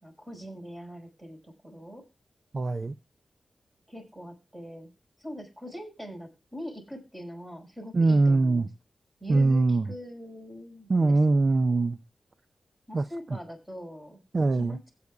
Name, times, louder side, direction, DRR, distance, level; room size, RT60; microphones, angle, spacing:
voice 1, 0.0-2.0 3.9-4.9 5.2-8.7 9.2-11.4 12.9-14.2 14.5-14.9, equal, 15° right, 5.1 m, -42 dB
voice 2, 2.5-2.9 7.9-8.7 9.3-9.9 10.9-12.0 12.9-13.0 14.3-14.8, right 3 dB, 45° right, 0.5 m, -22 dB
21.5 x 8.5 x 2.3 m
wide cardioid pair, 95°, 0 cm